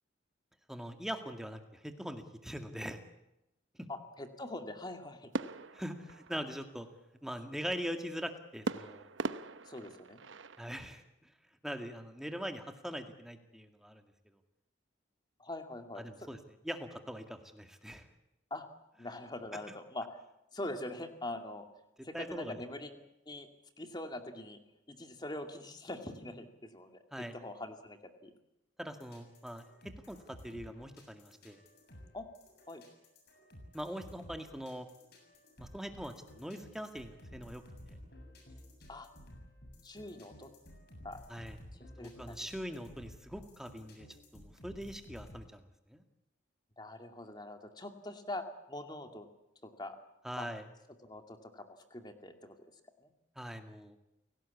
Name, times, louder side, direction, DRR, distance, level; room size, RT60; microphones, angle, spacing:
voice 1, 0.7-3.0 5.7-6.9 7.2-9.1 10.6-11.0 11.6-14.0 16.0-16.4 16.6-18.1 22.1-22.6 27.1-27.3 28.8-29.6 30.1-31.6 33.7-34.9 35.6-38.0 41.3-41.6 42.0-44.1 44.3-45.6 45.9-46.0 50.2-50.6 53.4-54.0, equal, ahead, 6 dB, 2.0 m, -42 dB
voice 2, 3.9-5.3 9.6-10.2 15.4-16.3 18.5-18.6 19.0-20.1 20.5-21.7 22.0-23.5 23.8-24.6 24.9-28.3 32.1-32.3 32.7-32.8 38.9-39.1 39.8-40.5 41.0-41.2 41.7-42.5 46.8-49.3 49.6-50.0 50.4-50.5 51.0-52.6 53.0-53.1, left 1 dB, 20° left, 6 dB, 2.5 m, -43 dB
sound 1, 5.3-6.9 8.7-10.7, right 3 dB, 75° right, 1.0 m, -40 dB
sound 2, 28.9-45.4, left 1 dB, 55° left, 7.2 m, -54 dB
29.5 x 18.0 x 8.5 m, 0.88 s
head